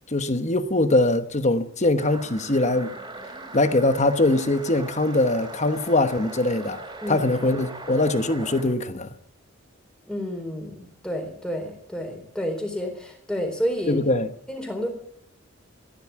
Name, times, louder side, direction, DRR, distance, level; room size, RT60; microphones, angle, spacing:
voice 1, 0.1-2.9 3.5-6.8 7.1-9.1 13.9-14.3, left 2 dB, 35° left, 1.1 m, -22 dB
sound 1, 2.0-8.7, right 2 dB, 20° right, 3.4 m, -39 dB
voice 2, 7.0-7.3 10.1-14.0 14.5-14.9, equal, 5° left, 4.0 m, -30 dB
15.5 x 11.0 x 8.3 m
head